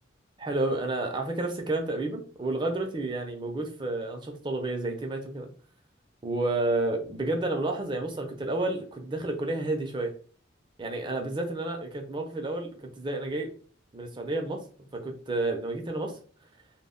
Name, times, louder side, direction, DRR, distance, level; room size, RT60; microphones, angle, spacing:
voice 1, 0.4-5.5 6.2-10.1 10.8-13.5 13.9-14.6 14.9-16.2, right 2 dB, 25° right, 3 dB, 0.4 m, -30 dB
2.1 x 2.1 x 3.6 m, 0.43 s
head